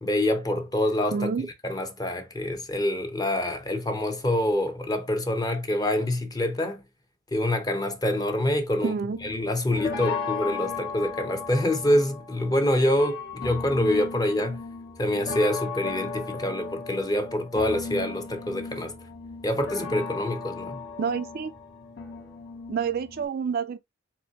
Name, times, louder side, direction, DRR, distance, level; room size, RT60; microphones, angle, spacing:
voice 1, 0.0-1.3 1.6-6.8 7.3-8.9 9.2-14.6 15.0-18.9 19.4-20.8, left 1 dB, 20° left, 0.8 m, -26 dB
voice 2, 1.1-1.5 8.8-9.2 21.0-21.5 22.7-23.8, right 6 dB, 50° right, 0.4 m, -28 dB
sound 1, 9.1-23.2, left 4 dB, 55° left, 1.4 m, -36 dB
4.3 x 4.1 x 2.4 m
head